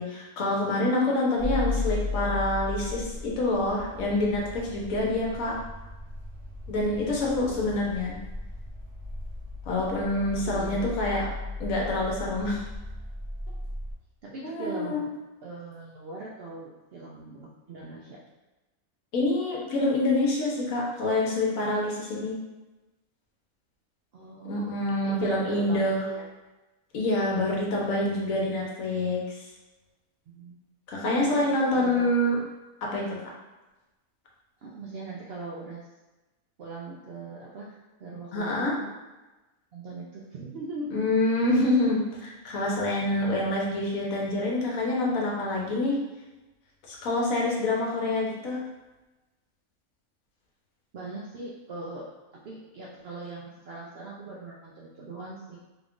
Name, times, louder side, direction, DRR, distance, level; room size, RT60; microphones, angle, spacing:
voice 1, 0.0-5.5 6.7-8.1 9.7-11.3 11.6-12.6 14.4-15.0 19.1-22.4 24.5-26.0 26.9-29.4 30.9-32.4 32.9-33.0 38.3-38.7 40.9-46.0 46.9-48.6, left 2 dB, 75° left, -2 dB, 1.2 m, -26 dB
sound 1, 1.4-13.9, left 3 dB, 20° right, 0.9 m, -36 dB
voice 2, 10.5-10.9 14.2-15.1 15.4-18.2 24.1-24.7 25.0-26.2 30.3-30.6 31.2-32.0 34.6-35.9 36.6-38.9 39.7-41.0 50.9-52.1 52.4-55.6, right 2 dB, 65° right, -4 dB, 0.6 m, -40 dB
3.7 x 2.4 x 3.6 m, 1.1 s
omnidirectional pair, 1.5 m